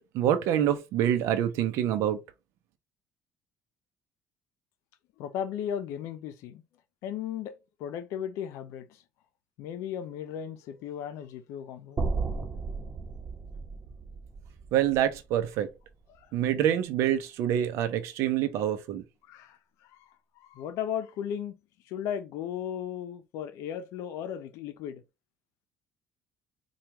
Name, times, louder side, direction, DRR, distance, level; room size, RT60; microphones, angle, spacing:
voice 1, 0.1-2.2 14.7-15.7 16.3-19.0, right 10 dB, 75° right, 0.6 m, -26 dB
voice 2, 5.2-6.6 7.0-7.5 7.8-8.9 9.6-12.0 19.3-19.6 20.6-21.6 21.9-25.0, left 9 dB, 80° left, 0.6 m, -35 dB
sound 1, 12.0-16.1, right 3 dB, 30° right, 1.1 m, -35 dB
4.6 x 2.4 x 2.9 m
cardioid pair, 105°, 5 cm